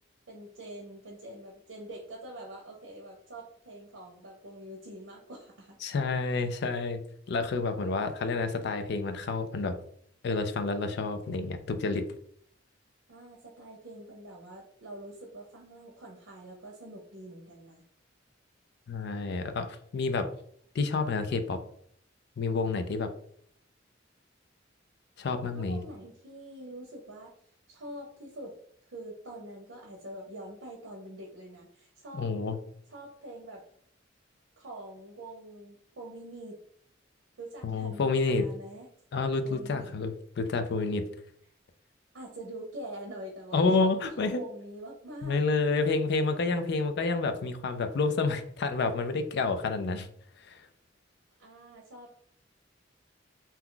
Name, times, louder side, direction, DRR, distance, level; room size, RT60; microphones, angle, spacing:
voice 1, 0.3-5.8 13.1-17.8 25.5-27.4 27.7-32.3 32.9-33.7 34.6-36.6 37.4-38.9 39.4-39.9 42.1-43.9 44.2-46.0 51.4-52.1, right 1 dB, 85° right, -1 dB, 0.7 m, -45 dB
voice 2, 5.8-7.0 7.3-9.8 10.2-12.0 18.9-20.3 20.7-21.6 22.4-23.1 25.2-25.8 32.1-32.6 37.6-38.4 39.1-41.0 43.5-44.4 45.2-50.1 50.5-50.6, left 3 dB, 60° left, 8 dB, 0.4 m, -29 dB
2.8 x 2.3 x 3.7 m, 0.63 s
head